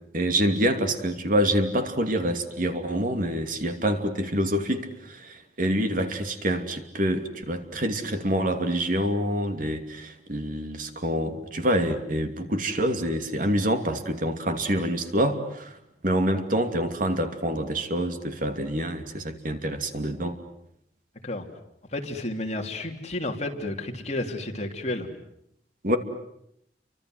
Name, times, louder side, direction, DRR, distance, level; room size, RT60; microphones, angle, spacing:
voice 1, 0.1-15.8 16.0-20.4 25.8-26.0, equal, 50° right, 7 dB, 2.8 m, -26 dB
voice 2, 21.9-25.1, left 1 dB, 40° left, 3 dB, 3.2 m, -31 dB
30.0 x 25.0 x 8.0 m, 0.77 s
head